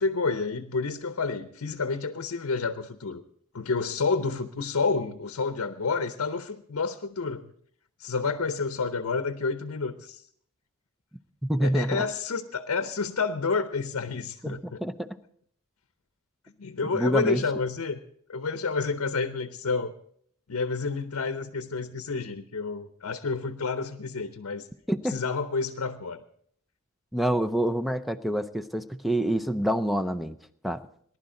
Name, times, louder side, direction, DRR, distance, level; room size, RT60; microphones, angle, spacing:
voice 1, 0.0-3.2 3.5-7.5 8.0-10.2 11.6-14.8 16.6-18.0 18.3-19.9 20.5-24.7 25.0-26.2, left 4 dB, 85° left, 9 dB, 0.7 m, -29 dB
voice 2, 11.5-12.0 14.4-15.2 16.9-17.4 24.9-25.2 27.1-30.4 30.6-30.8, right 1 dB, ahead, 9 dB, 0.5 m, -27 dB
19.5 x 11.5 x 3.8 m, 0.63 s
head